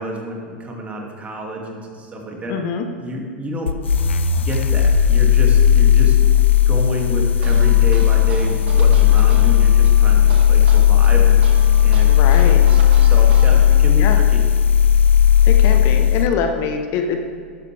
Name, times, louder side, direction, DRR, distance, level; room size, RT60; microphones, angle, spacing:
voice 1, 0.0-2.5 3.0-3.7 4.4-6.3 6.7-14.4, right 1 dB, 20° right, 0 dB, 2.4 m, -29 dB
voice 2, 2.5-2.9 12.0-12.7 14.0-14.2 15.4-17.2, left 6 dB, 45° left, 5 dB, 1.0 m, -23 dB
sound 1, 3.7-16.3, left 9 dB, 80° left, 0.6 m, -14 dB
sound 2, 7.3-14.1, right 5 dB, 65° right, 1.9 m, -36 dB
12.0 x 11.5 x 3.4 m, 2.2 s
hypercardioid pair, 100°, 6 cm